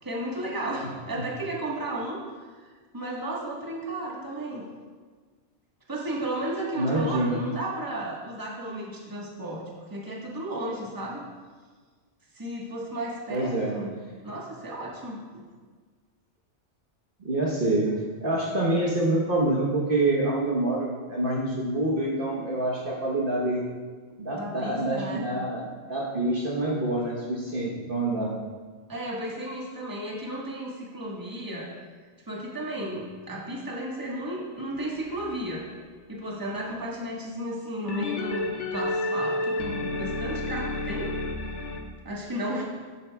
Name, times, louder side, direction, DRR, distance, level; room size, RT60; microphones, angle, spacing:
voice 1, 0.0-4.7 5.9-9.6 9.9-11.3 12.3-13.9 14.2-15.4 24.3-25.2 28.9-31.7 32.3-35.6 36.1-41.1 42.0-42.6, right 1 dB, 20° right, -4 dB, 1.3 m, -34 dB
voice 2, 6.8-7.4 13.3-13.8 17.2-17.9 18.2-23.6 24.2-28.4, right 2 dB, 50° right, -3 dB, 1.2 m, -26 dB
sound 1, 34.8-36.1 37.9-41.8, left 2 dB, 80° left, 1.2 m, -31 dB
11.0 x 8.4 x 2.3 m, 1.5 s
omnidirectional pair, 1.2 m